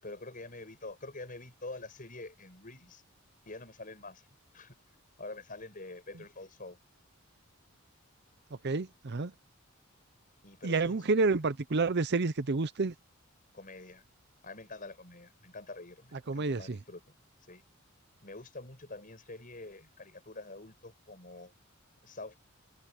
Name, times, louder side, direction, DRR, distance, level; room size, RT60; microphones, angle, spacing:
voice 1, 0.0-3.0 3.5-4.2 4.5-4.8 5.2-6.8 10.4-11.0 13.5-14.0 14.4-17.2 17.5-17.6 18.2-21.5 22.0-22.4, left 2 dB, 40° left, 7.1 m, -46 dB
voice 2, 8.6-9.3 10.6-12.9 16.3-16.8, right 3 dB, 55° right, 0.7 m, -29 dB
head